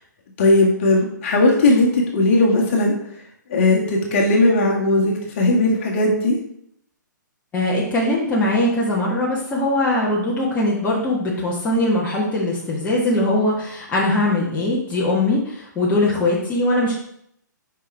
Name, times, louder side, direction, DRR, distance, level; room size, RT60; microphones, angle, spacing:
voice 1, 0.4-2.9 3.5-6.4, left 2 dB, 40° left, -1 dB, 1.8 m, -17 dB
voice 2, 7.5-16.9, left 1 dB, 15° left, -5 dB, 1.4 m, -21 dB
7.3 x 5.4 x 3.5 m, 0.71 s
figure-of-eight pair, 125°, 10 cm